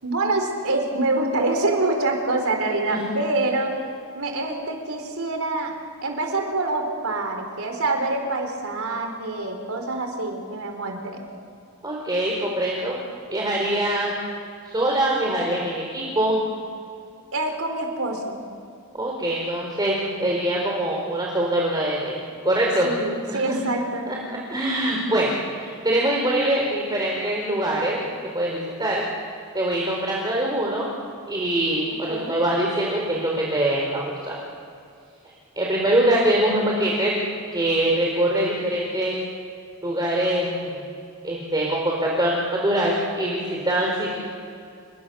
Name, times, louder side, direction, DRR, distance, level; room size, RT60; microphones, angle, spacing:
voice 1, 0.0-3.7 4.1-5.7 6.0-11.2 17.3-18.4 22.8-24.1 32.1-32.4, right 2 dB, 70° right, 3 dB, 4.4 m, -26 dB
voice 2, 11.8-13.0 13.3-14.1 14.6-16.4 18.9-22.9 23.3-23.6 24.1-28.0 28.3-29.0 29.5-30.9 31.3-34.4 35.6-37.2 37.5-39.1 39.8-40.8 41.2-44.2, right 1 dB, 20° right, -2 dB, 4.4 m, -23 dB
28.5 x 26.5 x 7.1 m, 2.4 s
head